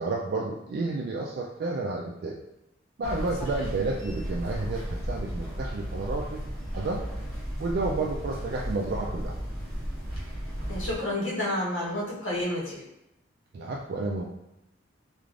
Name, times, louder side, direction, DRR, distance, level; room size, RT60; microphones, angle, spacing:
voice 1, 0.0-2.4 3.0-6.4 6.7-7.0 7.6-9.4 13.5-14.2, right 3 dB, 55° right, -2 dB, 0.3 m, -31 dB
sound 1, 3.0-10.9, equal, 5° left, 1.0 m, -34 dB
voice 2, 10.7-12.8, left 1 dB, 80° left, -6 dB, 1.1 m, -30 dB
3.2 x 2.4 x 2.4 m, 0.90 s
head